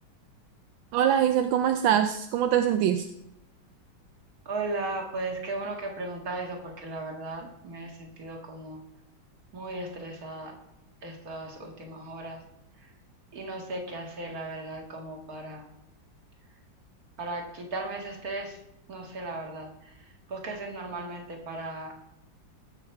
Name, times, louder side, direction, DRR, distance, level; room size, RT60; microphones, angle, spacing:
voice 1, 0.9-3.1, right 10 dB, 80° right, 8 dB, 1.4 m, -23 dB
voice 2, 4.5-8.8 9.5-10.6 11.0-12.4 13.3-15.7 17.2-18.6 18.9-19.7 20.3-21.9, right 2 dB, 50° right, 1 dB, 2.5 m, -36 dB
19.0 x 7.1 x 4.6 m, 0.87 s
omnidirectional pair, 2.1 m